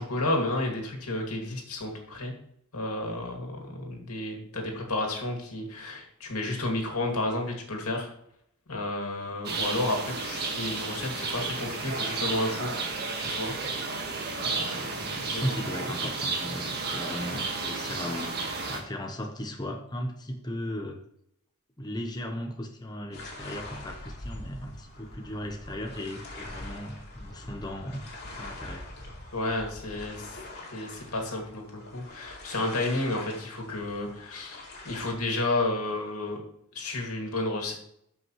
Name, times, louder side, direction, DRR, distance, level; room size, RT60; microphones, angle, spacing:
voice 1, 0.0-2.3 2.7-8.1 8.7-12.8 13.2-13.6 14.0-15.4 29.3-30.4 30.7-36.4 36.7-37.7, left 2 dB, 85° left, 2 dB, 2.4 m, -32 dB
sound 1, 9.4-18.8, right 3 dB, 45° right, 1.6 m, -32 dB
voice 2, 15.0-18.3 18.7-21.0 21.8-28.1 28.4-28.9, equal, 20° left, 3 dB, 0.9 m, -36 dB
sound 2, 23.1-35.1, left 2 dB, 50° left, 2.6 m, -44 dB
13.0 x 5.6 x 3.1 m, 0.72 s
head